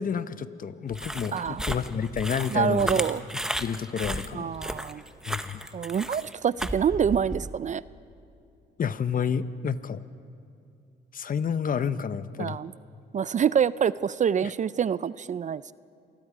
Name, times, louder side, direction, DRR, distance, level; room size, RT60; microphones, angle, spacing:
voice 1, 0.0-3.0 3.6-4.5 5.2-5.6 8.8-10.0 11.1-12.6 14.4-14.5, left 7 dB, 45° left, 13 dB, 0.8 m, -29 dB
sound 1, 0.9-7.5, right 1 dB, 5° right, 0.9 m, -34 dB
voice 2, 1.3-1.6 2.5-3.2 4.3-5.0 5.7-7.8 12.4-12.7 13.1-15.7, right 7 dB, 40° right, 18 dB, 0.4 m, -26 dB
27.0 x 20.5 x 5.0 m, 2.5 s
cardioid pair, 90°, 20 cm